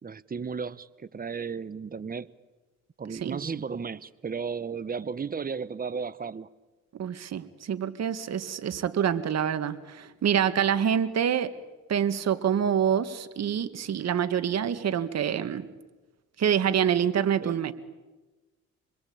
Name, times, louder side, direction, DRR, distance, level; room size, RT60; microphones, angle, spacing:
voice 1, 0.0-2.3 3.0-6.5 17.4-17.5, right 5 dB, 30° right, 1.0 m, -34 dB
voice 2, 7.0-11.5 11.9-15.7 16.4-17.7, right 8 dB, 60° right, 1.8 m, -26 dB
26.0 x 21.5 x 8.7 m
cardioid pair, 90°, 30 cm